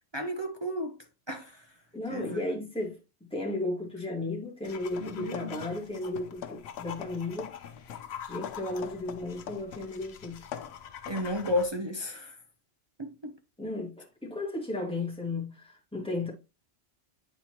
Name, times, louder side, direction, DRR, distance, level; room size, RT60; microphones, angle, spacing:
voice 1, 0.1-1.0 1.3-1.6 2.1-2.4 5.0-5.6 11.1-12.4 13.0-13.3, left 1 dB, 30° right, 0.6 m, -33 dB
voice 2, 1.9-3.0 3.3-7.5 8.3-10.4 13.6-16.3, left 2 dB, 5° left, 1.9 m, -34 dB
sound 1, 4.6-11.7, left 8 dB, 60° left, 0.9 m, -46 dB
sound 2, 4.9-5.9 6.2-9.9 10.2-11.4, left 9 dB, 85° left, 1.0 m, -44 dB
8.9 x 4.3 x 3.0 m
omnidirectional pair, 1.3 m